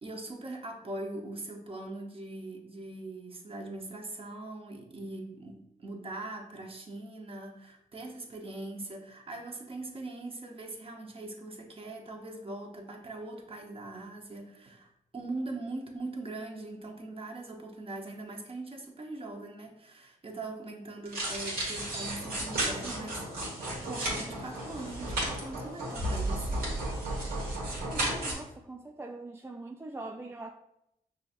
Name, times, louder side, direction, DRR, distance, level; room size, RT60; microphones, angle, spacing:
voice 1, 0.0-23.5 23.8-26.7, right 2 dB, 40° right, 0.9 m, -41 dB
sound 1, 21.1-28.3, right 1 dB, 85° right, 1.3 m, -33 dB
voice 2, 27.9-30.5, right 2 dB, 15° right, 0.3 m, -42 dB
5.5 x 2.6 x 2.5 m
cardioid pair, 60°, 15 cm